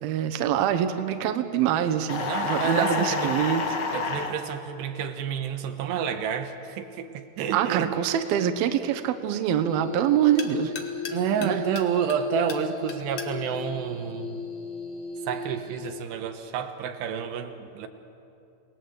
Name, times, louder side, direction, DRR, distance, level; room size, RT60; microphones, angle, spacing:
voice 1, 0.0-3.6 7.5-10.7 11.4-11.6, right 9 dB, 70° right, 7 dB, 2.8 m, -25 dB
sound 1, 2.1-4.3, left 4 dB, 75° left, 1.0 m, -28 dB
voice 2, 2.2-3.4 3.9-7.9 11.1-14.4 15.3-17.9, right 7 dB, 85° right, 6 dB, 3.3 m, -29 dB
sound 2, 7.3-14.9, left 5 dB, 55° left, 2.2 m, -44 dB
sound 3, 9.6-16.2, left 4 dB, 15° left, 1.3 m, -37 dB
28.5 x 19.5 x 7.9 m, 2.7 s
omnidirectional pair, 4.8 m